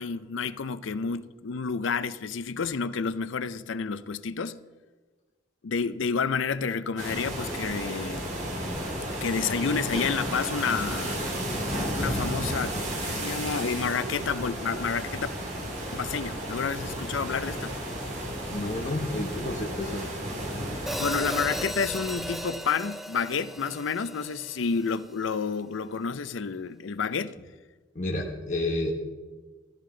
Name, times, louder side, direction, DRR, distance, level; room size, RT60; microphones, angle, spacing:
voice 1, 0.0-4.6 5.6-8.3 9.1-11.2 11.9-15.3 15.9-17.8 21.0-27.4, left 5 dB, 75° left, 0.5 m, -30 dB
sound 1, 7.0-21.6, right 1 dB, 40° right, 2.3 m, -33 dB
sound 2, 12.8-22.4, equal, 70° right, 2.5 m, -42 dB
voice 2, 18.5-20.0 27.9-28.9, left 2 dB, 35° left, 1.0 m, -30 dB
Hi-hat, 20.9-25.0, equal, ahead, 0.4 m, -36 dB
14.0 x 13.0 x 3.9 m
head